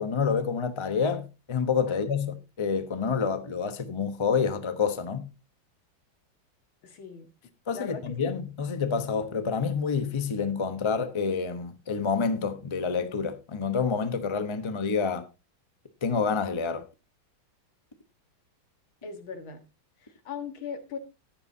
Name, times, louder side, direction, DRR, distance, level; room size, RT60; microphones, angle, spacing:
voice 1, 0.0-5.3 7.7-15.3 16.0-16.9, left 5 dB, 25° left, 0.7 m, -28 dB
voice 2, 6.8-7.3 7.7-8.2 19.0-19.6 20.0-21.0, left 6 dB, 80° left, 2.5 m, -39 dB
13.5 x 10.0 x 2.8 m
omnidirectional pair, 2.2 m